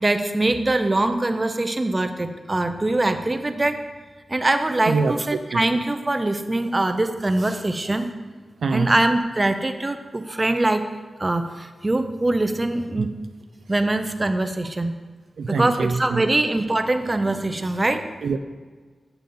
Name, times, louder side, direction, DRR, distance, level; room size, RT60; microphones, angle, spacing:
voice 1, 0.0-3.8 4.3-8.1 8.7-10.9 11.2-13.1 13.7-14.9 15.5-18.0, right 2 dB, 25° right, 8 dB, 0.6 m, -23 dB
voice 2, 8.6-8.9 13.0-13.1 15.4-16.2 18.2-18.4, right 4 dB, 80° right, 7 dB, 0.3 m, -23 dB
6.9 x 6.9 x 3.9 m, 1.4 s
cardioid pair, 65°, 0 cm